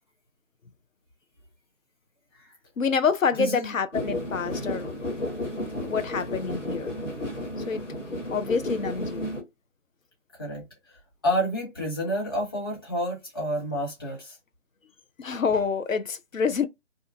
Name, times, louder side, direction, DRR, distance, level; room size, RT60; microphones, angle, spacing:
voice 1, 2.8-4.9 5.8-6.9 7.7-7.8 8.3-9.2 15.2-16.7, left 5 dB, 90° left, 0.5 m, -27 dB
voice 2, 3.4-3.7 10.4-10.7 11.2-14.4, equal, 20° left, 1.0 m, -29 dB
sound 1, 3.9-9.4, left 1 dB, 70° left, 1.4 m, -32 dB
2.7 x 2.3 x 2.3 m
figure-of-eight pair, 155°, 38 cm